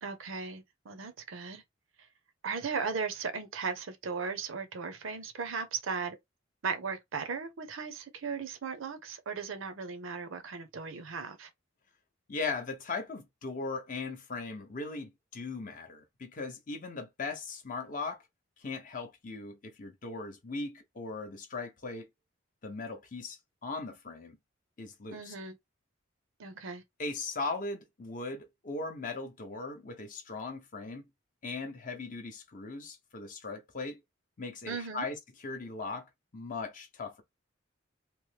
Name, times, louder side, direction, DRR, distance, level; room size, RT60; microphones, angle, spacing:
voice 1, 0.0-1.6 2.0-2.1 2.4-6.2 6.6-11.5 25.1-25.6 26.4-26.8 34.7-35.1, right 5 dB, 75° right, 0.6 m, -37 dB
voice 2, 12.3-18.2 18.6-22.1 22.6-24.4 24.8-25.3 27.0-31.1 31.4-34.0 34.4-37.2, left 3 dB, 40° left, 0.5 m, -39 dB
3.0 x 2.0 x 3.2 m
head